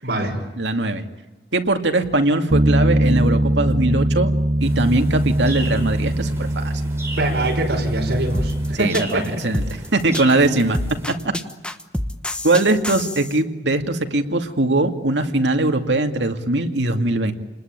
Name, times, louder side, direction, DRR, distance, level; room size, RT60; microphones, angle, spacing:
voice 1, 0.0-0.4 7.2-9.2, right 1 dB, 75° right, 1 dB, 5.4 m, -24 dB
voice 2, 0.6-1.0 1.5-4.3 4.6-6.7 8.7-9.6 9.9-10.8 11.1-11.2 12.4-17.3, right 2 dB, 90° right, 6 dB, 2.4 m, -20 dB
Bass guitar, 2.5-8.8, right 1 dB, 35° right, 0.8 m, -21 dB
sound 1, 4.6-11.1, right 2 dB, 15° right, 5.0 m, -38 dB
sound 2, 8.3-13.4, left 1 dB, 5° left, 1.1 m, -27 dB
29.5 x 20.5 x 9.0 m, 1.1 s
head